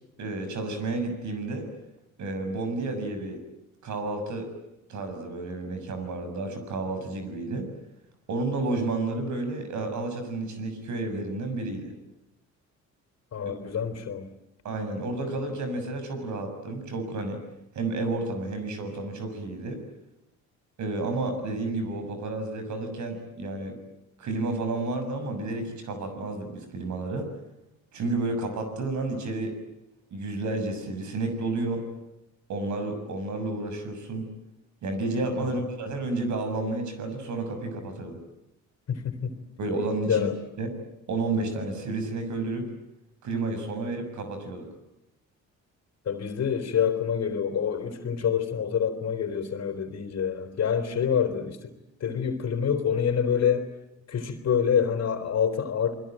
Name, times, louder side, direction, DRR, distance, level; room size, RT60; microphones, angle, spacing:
voice 1, 0.2-1.7 2.2-3.4 3.8-4.5 4.9-7.7 8.3-11.9 13.6-13.8 14.6-17.4 17.7-19.8 20.8-23.8 24.2-27.3 27.9-29.6 30.1-31.8 32.5-34.3 34.8-38.2 39.6-40.3 40.6-40.7 41.1-42.7 43.2-44.7, right 2 dB, 70° right, 7 dB, 6.8 m, -31 dB
voice 2, 13.3-14.3 35.4-35.7 38.9-39.4 40.1-40.4 46.1-51.7 52.0-53.7 54.1-55.9, left 7 dB, 60° left, 10 dB, 3.8 m, -27 dB
28.5 x 21.5 x 9.0 m, 0.86 s
cardioid pair, 90°, 30 cm